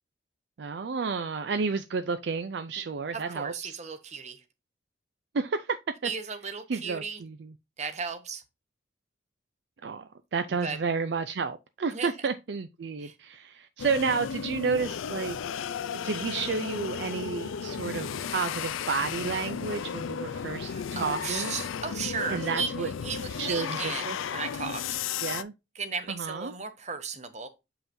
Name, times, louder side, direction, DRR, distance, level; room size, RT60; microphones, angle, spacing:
voice 1, 0.6-3.8 5.3-5.8 6.0-6.1 6.7-7.5 9.8-15.4 16.0-21.5 22.3-22.9 23.3-24.2 25.2-25.5 26.1-26.5, right 5 dB, 60° right, 0.4 m, -31 dB
voice 2, 3.1-4.4 6.0-7.2 7.8-8.4 10.6-10.8 11.9-12.1 13.0-13.1 20.7-24.8 25.7-27.5, right 5 dB, 35° right, 0.9 m, -35 dB
sound 1, 13.8-25.4, left 7 dB, 90° left, 0.4 m, -34 dB
7.2 x 5.6 x 2.6 m
head